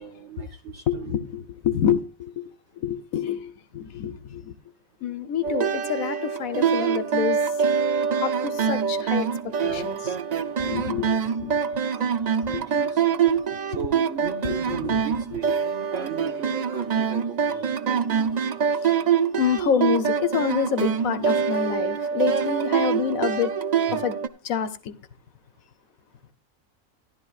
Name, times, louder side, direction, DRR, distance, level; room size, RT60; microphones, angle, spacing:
voice 1, 0.0-1.1 11.3-11.4 12.7-13.0 13.7-15.6 15.9-18.3 23.9-24.0, right 7 dB, 55° right, 1.2 m, -37 dB
voice 2, 0.9-2.5 2.8-4.5 5.0-7.4 8.2-10.2 10.6-11.6 12.5-12.6 13.4-13.5 14.4-15.0 18.8-19.0 19.4-23.5 23.9-24.2 24.4-24.9, left 8 dB, 70° left, 1.3 m, -27 dB
sound 1, 5.4-24.3, right 7 dB, 70° right, 0.4 m, -25 dB
14.5 x 11.5 x 2.4 m
omnidirectional pair, 1.5 m